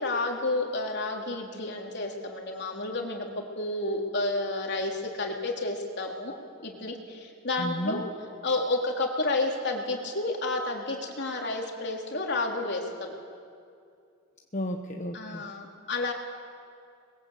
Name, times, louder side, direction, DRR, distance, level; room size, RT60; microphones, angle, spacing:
voice 1, 0.0-6.4 6.6-8.0 8.4-13.1 15.1-16.1, left 2 dB, 60° left, 1 dB, 3.4 m, -30 dB
voice 2, 7.6-8.0 14.5-15.5, left 1 dB, 40° left, 3 dB, 1.2 m, -33 dB
28.5 x 21.5 x 8.2 m, 2.4 s
head